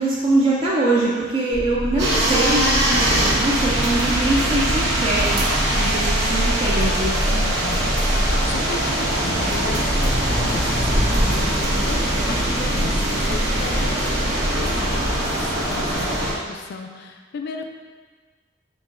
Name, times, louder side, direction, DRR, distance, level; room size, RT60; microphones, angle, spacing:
voice 1, 0.0-5.4 5.7-7.1, right 2 dB, 30° right, -7 dB, 0.4 m, -23 dB
sound 1, 1.5-15.2, equal, 85° right, 0.9 m, -28 dB
sound 2, 2.0-16.3, right 1 dB, 60° right, 0.9 m, -22 dB
voice 2, 7.3-17.6, left 4 dB, 55° left, 4 dB, 0.3 m, -35 dB
3.9 x 3.7 x 2.5 m, 1.5 s
head